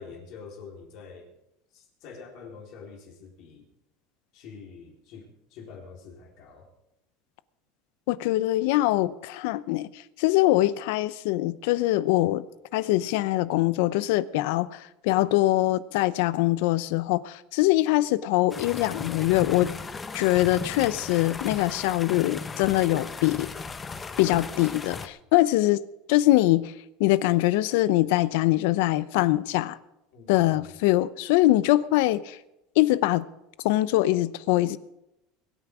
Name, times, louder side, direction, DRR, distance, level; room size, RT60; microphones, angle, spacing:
voice 1, 0.0-1.3 1.7-3.7 4.3-6.7 30.1-30.8, left 5 dB, 50° left, 4.1 m, -46 dB
voice 2, 8.1-9.9 10.2-12.4 12.7-19.8 20.1-23.5 24.2-25.8 26.1-26.7 27.0-29.8 30.3-32.4 32.8-33.3 33.6-34.8, left 16 dB, 70° left, 0.7 m, -23 dB
sound 1, 18.5-25.1, left 4 dB, 15° left, 0.7 m, -36 dB
22.5 x 9.0 x 4.9 m
cardioid pair, 165°, 0 cm